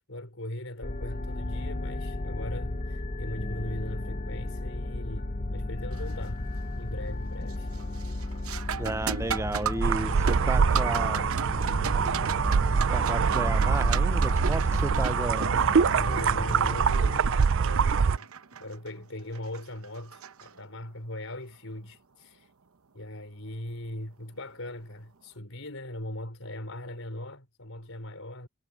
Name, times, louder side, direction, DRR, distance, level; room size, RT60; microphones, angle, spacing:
voice 1, 0.0-6.4 6.8-7.7 15.9-18.3 18.6-22.5 22.9-28.5, left 1 dB, 65° left, 5.2 m, -40 dB
sound 1, 0.8-17.2, left 2 dB, 35° left, 0.8 m, -34 dB
sound 2, 5.9-6.3 6.7-7.1 7.5-21.0 23.5-23.6 24.4-24.7, right 7 dB, 80° right, 0.9 m, -38 dB
voice 2, 8.8-11.2 12.9-15.5, right 2 dB, 15° right, 0.5 m, -33 dB
sound 3, 9.8-18.2, right 6 dB, 60° right, 0.5 m, -24 dB
head